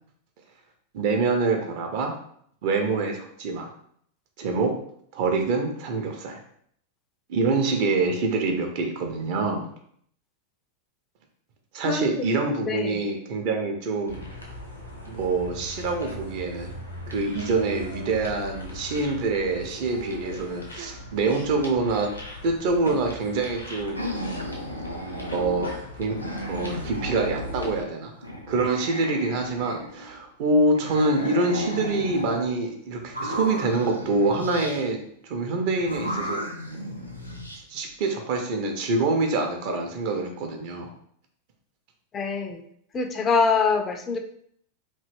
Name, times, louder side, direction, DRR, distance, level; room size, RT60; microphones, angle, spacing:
voice 1, 0.9-2.1 2.6-3.7 4.4-4.7 5.1-6.4 7.3-9.6 11.7-14.2 15.0-16.7 17.1-22.1 22.4-24.0 25.3-25.7 26.0-26.2 26.5-28.1 28.5-35.0 35.2-36.4 37.7-40.9, right 3 dB, 50° right, 3 dB, 0.6 m, -25 dB
voice 2, 12.7-13.1 42.1-42.6 42.9-44.2, left 5 dB, 25° left, 5 dB, 0.4 m, -24 dB
sound 1, 14.1-27.8, left 1 dB, 85° left, 0.7 m, -39 dB
sound 2, 23.9-25.8 26.1-27.8 28.2-30.2 30.7-32.5 33.0-34.8 35.8-37.6, equal, 90° right, 0.5 m, -34 dB
3.0 x 2.5 x 3.3 m, 0.65 s
figure-of-eight pair, 90°, 0 cm